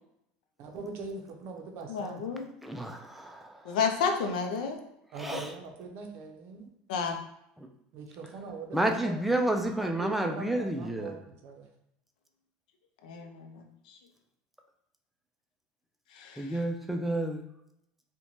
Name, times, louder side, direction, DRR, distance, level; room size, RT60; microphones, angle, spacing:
voice 1, 0.6-2.2 5.1-6.7 7.9-9.1 9.6-11.7, right 4 dB, 60° right, 3 dB, 0.5 m, -42 dB
voice 2, 1.9-2.4 3.6-4.8 5.2-5.4 6.9-7.2 13.0-14.0 16.1-16.5, left 5 dB, 90° left, 4 dB, 0.4 m, -31 dB
voice 3, 2.6-3.8 5.2-5.5 7.6-7.7 8.7-11.2 16.4-17.4, right 1 dB, 5° right, 4 dB, 0.3 m, -30 dB
2.5 x 2.1 x 3.0 m, 0.79 s
supercardioid pair, 115°, 4 cm